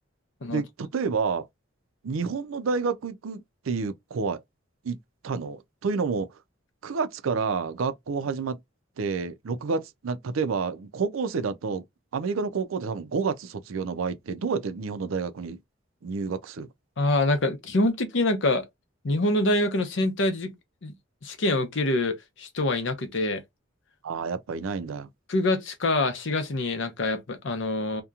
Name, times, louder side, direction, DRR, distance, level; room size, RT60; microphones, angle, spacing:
voice 1, 0.5-1.5 2.0-4.4 4.8-5.0 5.2-6.4 6.8-8.6 9.0-11.8 12.1-15.6 16.0-16.7 24.0-25.1, right 5 dB, 90° right, 0.5 m, -29 dB
voice 2, 17.0-18.6 19.0-20.5 20.8-20.9 21.2-23.4 25.3-28.0, left 2 dB, 65° left, 0.7 m, -25 dB
2.8 x 2.2 x 2.4 m
head